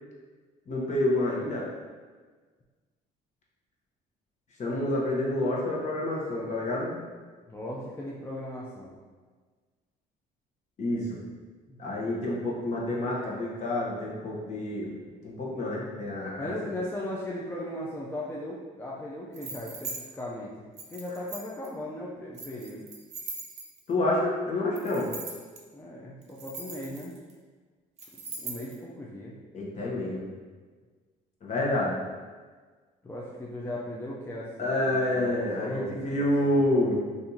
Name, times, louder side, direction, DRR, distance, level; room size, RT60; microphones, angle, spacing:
voice 1, 0.7-1.6 4.6-7.0 10.8-11.2 11.8-14.9 15.2-16.5 23.9-25.1 29.5-30.3 31.4-32.0 34.6-37.0, left 1 dB, 45° left, -4 dB, 0.9 m, -28 dB
voice 2, 7.5-8.9 11.7-11.8 12.0-12.3 16.4-22.9 25.7-27.1 28.4-29.3 33.0-36.7, left 1 dB, 15° left, -5 dB, 0.5 m, -38 dB
sound 1, 19.3-20.0 20.8-21.7 22.3-23.9 24.8-25.6 26.2-27.3 28.0-28.8, right 4 dB, 40° right, 0.7 m, -40 dB
2.8 x 2.6 x 3.7 m, 1.4 s
cardioid pair, 110°, 17 cm